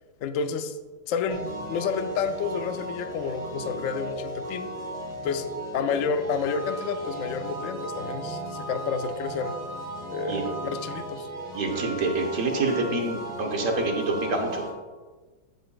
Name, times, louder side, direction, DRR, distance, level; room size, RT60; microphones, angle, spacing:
voice 1, 0.2-0.7 1.1-1.4 1.7-4.7 5.2-5.5 5.7-9.5 10.1-11.3, left 6 dB, 85° left, 9 dB, 0.7 m, -30 dB
sound 1, 1.3-14.7, right 1 dB, 25° right, 1.4 m, -36 dB
voice 2, 11.5-14.6, right 3 dB, 50° right, 2 dB, 1.2 m, -27 dB
14.5 x 5.4 x 2.3 m, 1.3 s
omnidirectional pair, 2.0 m